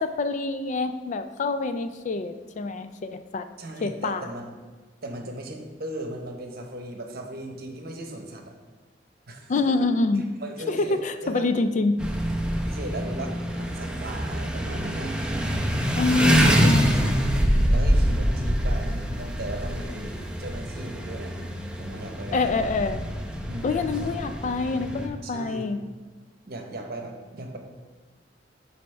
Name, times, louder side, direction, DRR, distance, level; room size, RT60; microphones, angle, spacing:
voice 1, 0.0-3.5 3.8-4.3 9.5-10.2 10.7-12.0 15.9-17.1 22.3-23.0 23.6-25.8, left 3 dB, 40° left, 9 dB, 0.3 m, -26 dB
voice 2, 3.6-4.5 5.0-8.5 9.3-9.6 10.4-11.5 12.6-15.2 16.2-21.4 21.8-22.7 23.5-23.7 25.2-25.7 26.4-27.6, right 1 dB, 55° right, 3 dB, 0.9 m, -37 dB
sound 1, 12.0-25.1, equal, 5° right, 0.6 m, -25 dB
10.5 x 4.2 x 3.3 m, 1.3 s
head